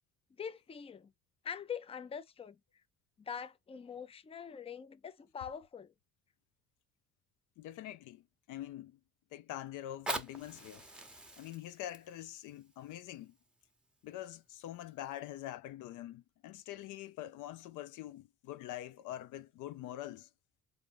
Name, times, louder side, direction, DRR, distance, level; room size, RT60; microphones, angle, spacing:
voice 1, 0.4-1.1 1.4-2.6 3.2-5.9, left 7 dB, 20° left, 0.4 m, -44 dB
voice 2, 7.6-9.0 9.3-10.9 11.4-13.4 14.0-20.3, left 13 dB, 85° left, 0.4 m, -45 dB
Fire, 9.8-14.8 15.4-15.5, right 1 dB, 5° right, 0.8 m, -45 dB
3.9 x 2.6 x 4.5 m
cardioid pair, 90°, 30 cm